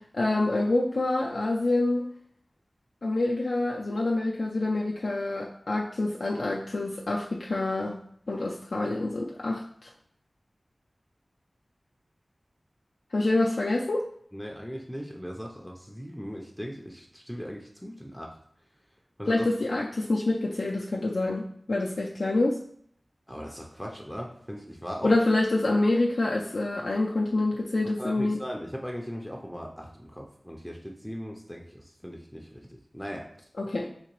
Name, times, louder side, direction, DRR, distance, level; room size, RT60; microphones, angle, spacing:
voice 1, 0.1-2.0 3.0-8.0 8.3-9.9 13.1-14.0 19.3-22.6 25.0-28.4 33.6-33.9, left 2 dB, 75° left, -3 dB, 0.3 m, -26 dB
voice 2, 14.3-18.4 19.2-19.5 23.3-25.1 27.8-33.3, equal, 5° left, 0 dB, 0.4 m, -38 dB
3.8 x 2.8 x 3.0 m, 0.65 s
wide cardioid pair, 70°, 0 cm